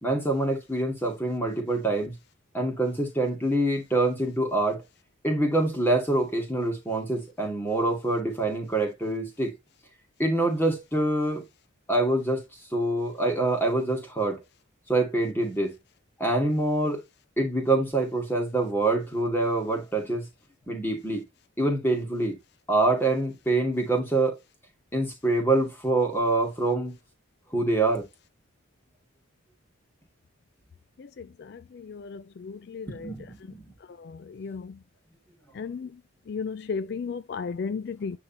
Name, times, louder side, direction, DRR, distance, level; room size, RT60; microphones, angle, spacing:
voice 1, 0.0-2.2 2.5-4.8 5.2-9.5 10.2-11.4 11.9-12.4 12.7-14.4 14.9-15.7 16.2-17.0 17.4-20.3 20.7-21.2 21.6-22.4 22.7-24.4 24.9-27.0 27.5-28.0 32.9-33.6, right 2 dB, 10° left, 2.4 m, -25 dB
voice 2, 36.3-38.1, left 5 dB, 50° left, 0.3 m, -32 dB
9.6 x 3.6 x 2.9 m
head